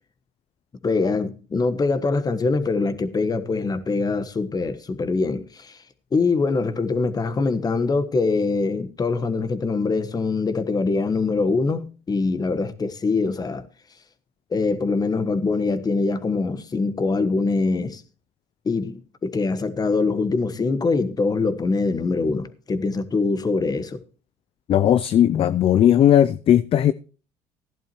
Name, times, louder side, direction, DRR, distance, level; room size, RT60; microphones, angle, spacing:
voice 1, 0.8-5.8 6.1-13.6 14.5-18.0 18.6-24.0, left 3 dB, 30° left, 1.3 m, -23 dB
voice 2, 24.7-26.9, left 10 dB, 45° left, 0.4 m, -17 dB
15.5 x 11.0 x 3.1 m
supercardioid pair, 80°, 13 cm